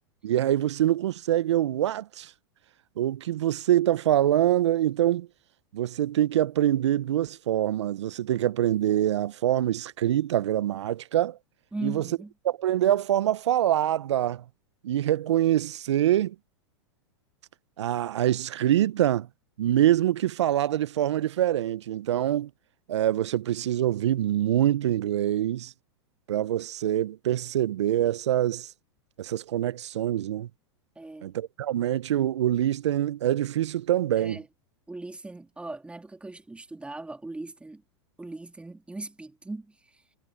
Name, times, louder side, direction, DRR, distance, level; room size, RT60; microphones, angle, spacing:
voice 1, 0.2-2.3 3.0-5.3 5.7-11.4 11.8-12.0 12.4-14.4 14.8-16.3 17.8-19.3 19.6-22.5 22.9-25.7 26.3-28.7 29.2-30.5 31.2-34.4, right 12 dB, 80° right, 0.8 m, -25 dB
voice 2, 11.7-12.3 30.9-31.3 34.2-34.5 34.9-37.8 38.2-39.8, right 2 dB, 10° right, 3.1 m, -39 dB
hypercardioid pair, 110°, 15 cm